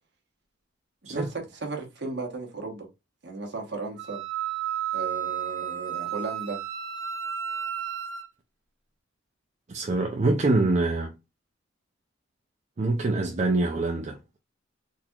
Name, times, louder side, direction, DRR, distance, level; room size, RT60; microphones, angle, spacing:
voice 1, 1.0-2.9 3.2-4.2 4.9-6.6, right 3 dB, 55° right, 1.2 m, -35 dB
Wind instrument woodwind instrument, 4.0-8.3, right 9 dB, 70° right, 1.5 m, -32 dB
voice 2, 9.7-11.1 12.8-14.4, right 2 dB, 35° right, 0.4 m, -25 dB
3.9 x 2.8 x 2.3 m
head